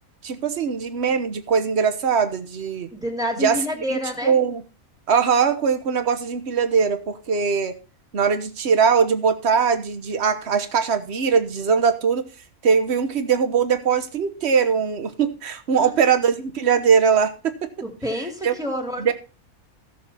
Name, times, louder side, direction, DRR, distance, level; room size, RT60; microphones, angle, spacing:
voice 1, 0.2-2.9 3.4-3.6 3.9-4.6 5.1-7.7 8.1-12.2 12.6-17.5 18.4-18.5 19.0-19.1, right 6 dB, 50° right, 9 dB, 1.4 m, -21 dB
voice 2, 2.9-4.3 15.7-16.0 17.8-19.1, equal, ahead, 2 dB, 2.7 m, -28 dB
15.5 x 7.1 x 4.2 m, 0.32 s
omnidirectional pair, 1.5 m